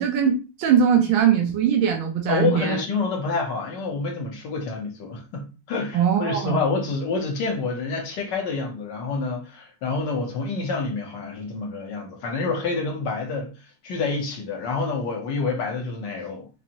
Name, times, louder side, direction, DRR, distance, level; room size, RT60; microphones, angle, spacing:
voice 1, 0.0-2.8 5.9-6.6, right 8 dB, 85° right, 1.5 m, -21 dB
voice 2, 2.3-13.5 13.8-16.5, left 4 dB, 65° left, 1.5 m, -28 dB
4.5 x 2.6 x 2.9 m
omnidirectional pair, 2.2 m